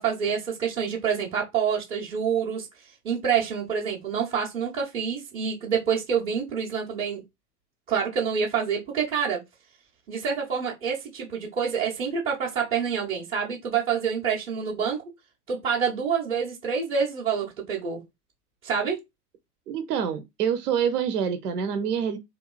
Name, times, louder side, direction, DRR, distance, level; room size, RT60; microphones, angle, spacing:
voice 1, 0.0-2.7 3.0-7.2 7.9-9.4 10.1-15.0 15.5-18.0 18.6-19.0, right 7 dB, 10° right, 0.3 m, -27 dB
voice 2, 19.7-22.2, right 7 dB, 75° right, 0.6 m, -26 dB
2.9 x 2.2 x 2.3 m
hypercardioid pair, 100°, 47 cm